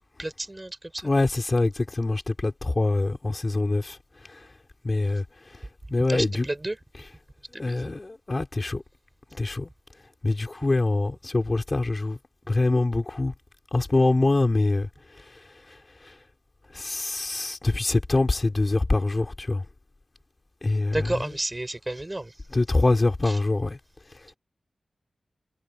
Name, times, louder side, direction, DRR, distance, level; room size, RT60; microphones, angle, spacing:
voice 1, 0.2-1.1 6.1-6.8 7.5-7.9 20.9-22.3 23.3-23.4, right 1 dB, 25° right, 7.6 m, -31 dB
voice 2, 1.0-4.5 4.8-6.5 7.5-8.8 9.3-9.7 10.2-12.2 12.5-13.3 13.7-16.2 16.7-19.6 20.6-21.3 22.5-23.8 24.1-24.3, left 2 dB, 40° left, 4.5 m, -25 dB
cardioid pair, 45°, 0 cm